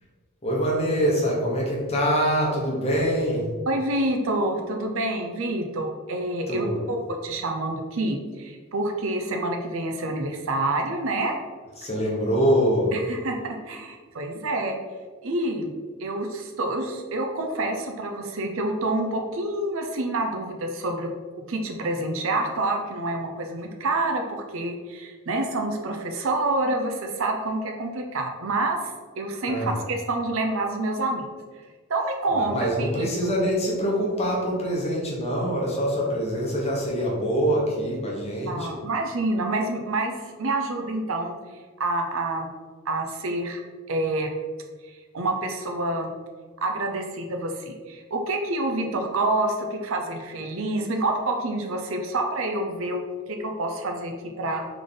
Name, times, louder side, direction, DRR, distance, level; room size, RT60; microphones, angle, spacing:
voice 1, 0.4-3.5 6.5-6.9 11.8-12.9 29.5-29.8 32.3-38.8, equal, 30° left, -3 dB, 1.0 m, -24 dB
voice 2, 3.7-7.0 7.2-11.4 12.9-14.8 15.2-15.7 16.0-21.1 21.5-28.8 29.2-31.3 31.9-33.1 38.5-41.3 41.8-42.5 42.9-43.6 43.9-44.3 45.1-46.1 46.6-53.0 53.3-54.7, right 2 dB, 65° right, 3 dB, 0.6 m, -27 dB
3.7 x 3.4 x 3.8 m, 1.5 s
head